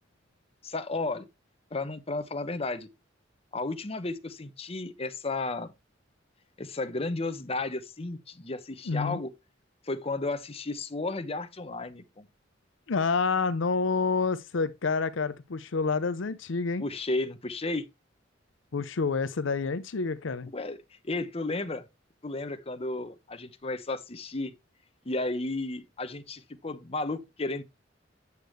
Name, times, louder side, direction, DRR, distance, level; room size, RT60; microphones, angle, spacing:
voice 1, 0.6-1.3 1.7-2.9 3.5-5.7 6.6-9.3 9.8-12.3 16.8-17.9 20.5-21.8 22.2-24.5 25.0-27.6, left 2 dB, 30° left, 1.0 m, -33 dB
voice 2, 8.9-9.2 12.9-16.8 18.7-20.5, left 4 dB, 80° left, 0.6 m, -28 dB
8.3 x 8.0 x 3.1 m
head